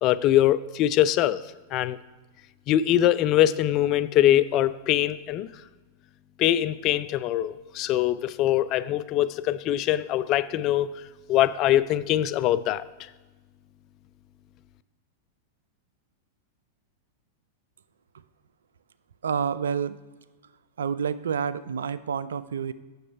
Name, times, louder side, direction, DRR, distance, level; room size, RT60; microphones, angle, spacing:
voice 1, 0.0-1.4 1.7-2.0 2.7-5.5 6.4-10.9 11.3-12.8, left 12 dB, 45° left, 16 dB, 0.3 m, -23 dB
voice 2, 19.2-20.0 20.8-22.7, right 7 dB, 80° right, 15 dB, 0.3 m, -28 dB
7.9 x 6.2 x 4.5 m, 1.2 s
hypercardioid pair, 100°, 0 cm